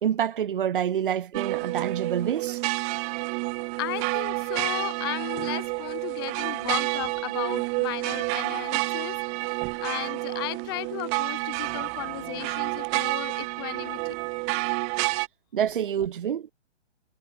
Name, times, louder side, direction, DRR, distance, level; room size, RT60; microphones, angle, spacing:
voice 1, 0.0-2.6 15.5-16.5, right 9 dB, 45° right, 2.2 m, -27 dB
sound 1, 1.3-15.3, right 33 dB, 20° right, 2.4 m, -29 dB
voice 2, 3.8-9.5 9.8-14.1, left 19 dB, 20° left, 1.3 m, -35 dB
hypercardioid pair, 160°, 36 cm